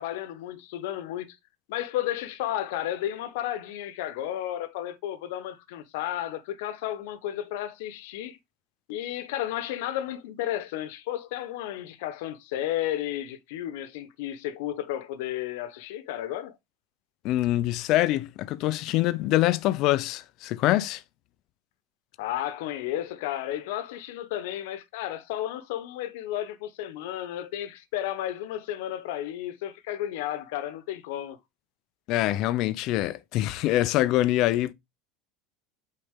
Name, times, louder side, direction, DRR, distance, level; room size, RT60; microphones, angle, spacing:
voice 1, 0.0-1.4 1.7-8.4 8.9-16.6 22.2-31.4, left 12 dB, 70° left, 0.9 m, -33 dB
voice 2, 17.2-21.0 32.1-34.7, left 15 dB, 40° left, 0.5 m, -24 dB
8.6 x 4.2 x 3.6 m
cardioid pair, 175°, 0 cm